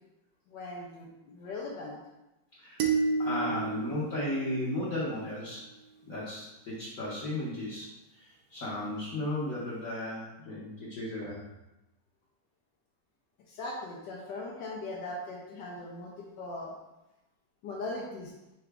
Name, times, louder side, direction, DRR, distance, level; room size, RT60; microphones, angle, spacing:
voice 1, 0.5-2.0 13.5-16.8 17.6-18.3, left 2 dB, 80° left, -2 dB, 1.3 m, -39 dB
voice 2, 2.6-2.9 3.2-5.6 6.1-11.4, left 1 dB, 55° left, -9 dB, 1.1 m, -35 dB
sound 1, 2.8-5.2, right 4 dB, 70° right, 1.0 m, -31 dB
5.8 x 2.5 x 3.3 m, 0.97 s
omnidirectional pair, 2.0 m